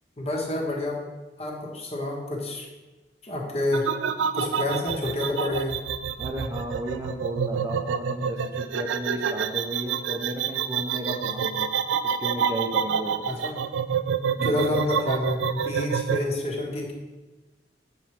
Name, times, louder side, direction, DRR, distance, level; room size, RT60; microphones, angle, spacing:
voice 1, 0.2-1.0 1.4-2.7 3.2-3.9 4.3-5.8 13.2-13.6 14.4-16.9, left 2 dB, 35° left, 0 dB, 1.1 m, -28 dB
sound 1, 3.7-16.2, right 7 dB, 90° right, 0.4 m, -27 dB
voice 2, 6.2-11.7 12.2-13.2 14.4-14.7, right 1 dB, 15° right, 1 dB, 0.5 m, -34 dB
7.1 x 3.1 x 5.7 m, 1.2 s
head